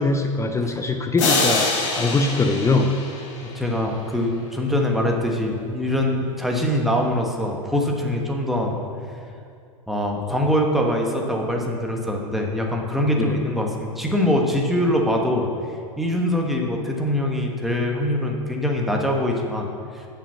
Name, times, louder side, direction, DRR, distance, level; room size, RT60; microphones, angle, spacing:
voice 1, 0.0-2.9 13.2-13.4, left 3 dB, 15° left, 5 dB, 0.6 m, -22 dB
sound 1, 1.2-4.0, left 3 dB, 60° left, 1.6 m, -25 dB
voice 2, 3.4-8.7 9.9-15.5 16.0-19.7 19.9-20.1, left 1 dB, ahead, 0 dB, 1.2 m, -23 dB
7.1 x 5.8 x 6.9 m, 2.5 s
figure-of-eight pair, 85°, 17 cm